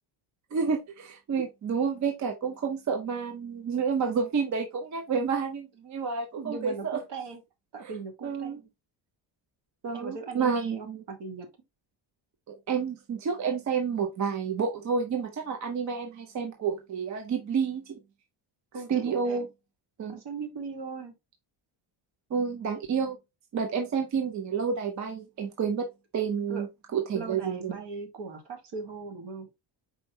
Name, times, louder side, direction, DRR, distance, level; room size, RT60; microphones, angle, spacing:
voice 1, 0.5-7.0 7.8-7.9 8.2-8.6 9.8-11.0 12.5-18.0 18.9-19.5 20.0-20.2 22.3-23.2 23.5-25.9 26.1-27.8, right 6 dB, 40° right, 0.6 m, -30 dB
voice 2, 6.4-7.4 7.7-8.7 9.9-11.5 18.7-19.4 20.1-21.1 26.5-26.7 27.1-29.5, right 4 dB, 60° right, 1.3 m, -39 dB
4.5 x 4.4 x 2.6 m
cardioid pair, 165°, 48 cm